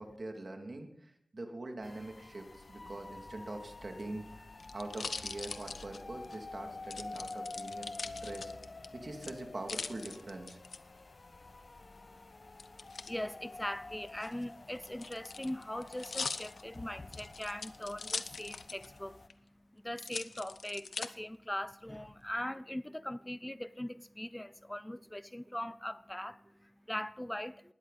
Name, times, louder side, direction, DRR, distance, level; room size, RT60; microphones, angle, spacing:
voice 1, 0.0-8.5 8.9-10.6, right 2 dB, 50° right, 2.6 m, -44 dB
sound 1, 1.8-19.3, left 3 dB, 50° left, 0.9 m, -49 dB
sound 2, 3.9-6.4 6.9-8.9 9.2-10.8 12.6-13.1 14.1-19.0 19.3-19.4 20.0-21.1 21.7-22.2, left 4 dB, 85° left, 0.8 m, -42 dB
voice 2, 11.8-27.7, left 1 dB, 10° left, 0.6 m, -41 dB
19.5 x 13.0 x 4.2 m
wide cardioid pair, 65°, 0 cm